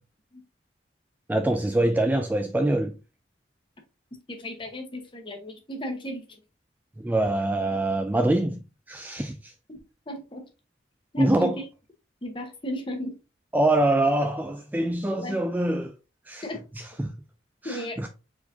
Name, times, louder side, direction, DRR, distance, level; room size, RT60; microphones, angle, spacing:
voice 1, 1.3-3.0 7.0-9.5 11.2-11.6 13.5-15.9 16.3-16.5 16.8-17.1 17.6-18.1, right 1 dB, 10° right, 0.3 m, -24 dB
voice 2, 4.3-6.2 9.7-9.8 10.1-10.4 11.1-11.5 12.2-13.1 15.1-15.4 16.4-16.6 17.6-18.0, equal, 30° left, 1.1 m, -35 dB
4.5 x 4.3 x 2.6 m
head